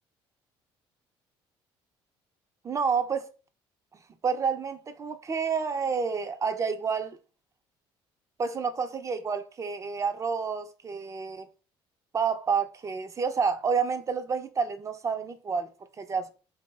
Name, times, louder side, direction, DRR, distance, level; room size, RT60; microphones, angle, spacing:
voice 1, 2.6-3.3 4.2-7.2 8.4-11.5 12.1-15.7 16.0-16.3, right 5 dB, 30° right, 0.5 m, -29 dB
2.8 x 2.1 x 3.3 m
supercardioid pair, 80°, 11 cm